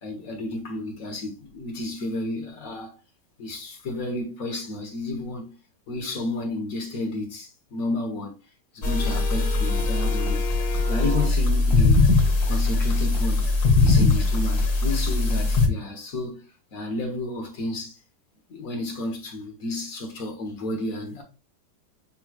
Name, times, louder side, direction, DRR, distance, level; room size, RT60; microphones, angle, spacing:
voice 1, 0.0-3.0 3.4-5.5 5.9-8.3 8.7-10.4 10.9-12.1 12.5-13.4 13.8-18.0 18.5-21.2, left 2 dB, 50° left, 1.4 m, -31 dB
sound 1, 8.8-15.7, left 3 dB, 70° left, 2.0 m, -21 dB
7.0 x 3.1 x 2.3 m
omnidirectional pair, 2.2 m